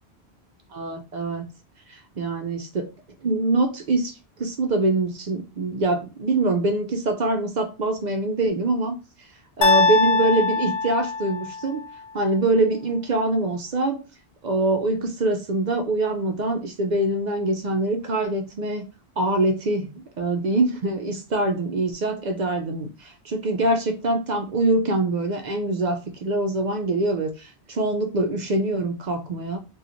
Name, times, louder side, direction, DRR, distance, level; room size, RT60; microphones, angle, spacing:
voice 1, 0.7-1.4 1.9-2.9 3.2-9.0 9.6-11.8 12.1-14.0 14.4-18.9 19.2-29.6, right 2 dB, 55° right, 0.5 m, -24 dB
sound 1, 9.6-11.7, left 4 dB, 50° left, 0.4 m, -21 dB
3.0 x 2.3 x 2.5 m
omnidirectional pair, 1.1 m